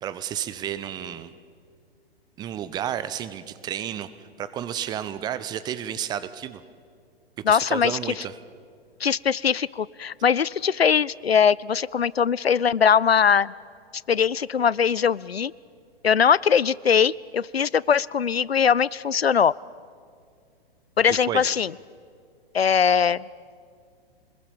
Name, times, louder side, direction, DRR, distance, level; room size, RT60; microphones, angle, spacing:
voice 1, 0.0-1.3 2.4-4.1 4.4-6.6 7.5-8.4 21.1-21.5, right 10 dB, 15° right, 14 dB, 0.6 m, -31 dB
voice 2, 7.5-8.0 9.0-13.5 14.1-15.5 16.0-19.5 21.0-21.7 22.5-23.2, left 7 dB, 80° left, 23 dB, 0.5 m, -21 dB
26.5 x 20.5 x 7.1 m, 2.2 s
figure-of-eight pair, 115°, 30 cm